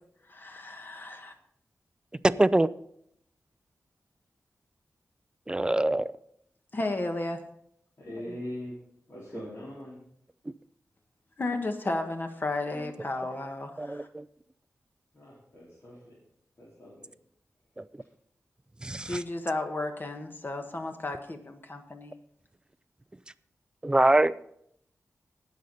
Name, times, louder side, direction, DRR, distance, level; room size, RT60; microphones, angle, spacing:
voice 1, 0.3-1.3 6.7-7.4 11.4-14.1 19.0-22.1, left 2 dB, 40° left, 5 dB, 1.5 m, -33 dB
voice 2, 5.5-6.1 13.8-14.2 17.8-17.9 18.8-19.2 23.8-24.3, right 2 dB, 15° right, 16 dB, 0.4 m, -24 dB
voice 3, 8.0-8.8 9.1-10.0 15.1-16.2 16.6-17.1, left 1 dB, 60° left, -7 dB, 3.9 m, -42 dB
19.0 x 6.5 x 4.1 m, 0.70 s
wide cardioid pair, 100°, 5 cm